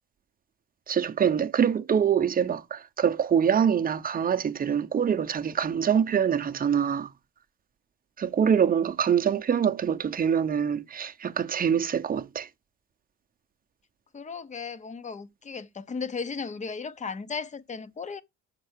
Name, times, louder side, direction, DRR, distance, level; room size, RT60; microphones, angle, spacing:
voice 1, 0.9-7.1 8.2-12.5, right 8 dB, 30° right, 0.7 m, -25 dB
voice 2, 14.1-18.2, left 5 dB, 25° left, 0.7 m, -35 dB
6.6 x 4.5 x 6.1 m
cardioid pair, 115°, 31 cm